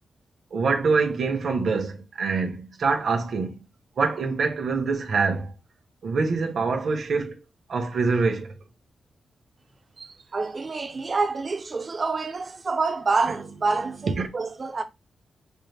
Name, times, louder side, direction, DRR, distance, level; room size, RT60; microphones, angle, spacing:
voice 1, 0.5-3.6 4.0-5.5 6.0-7.4 7.7-8.5 14.2-14.3, right 4 dB, 55° right, 0.8 m, -25 dB
voice 2, 10.0-14.8, right 3 dB, 30° right, 0.5 m, -27 dB
5.3 x 2.1 x 3.3 m
wide cardioid pair, 175°, 0 cm